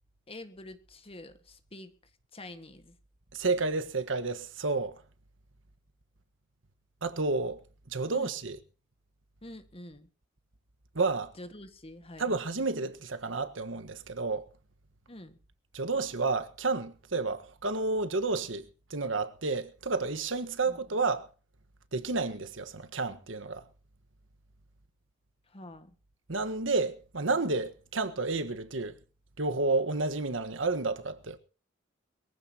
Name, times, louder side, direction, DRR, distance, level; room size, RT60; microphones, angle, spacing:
voice 1, 0.3-1.9 2.3-3.0 8.1-8.3 9.4-10.1 11.4-12.3 15.1-15.4 20.6-20.8 25.5-25.9, left 1 dB, 30° left, 1.7 m, -46 dB
voice 2, 3.3-5.0 7.0-7.6 7.9-8.6 10.9-11.3 12.2-14.5 15.7-21.3 21.9-23.6 26.3-29.0 29.4-31.4, right 3 dB, 85° right, 1.5 m, -31 dB
22.0 x 15.0 x 2.9 m
head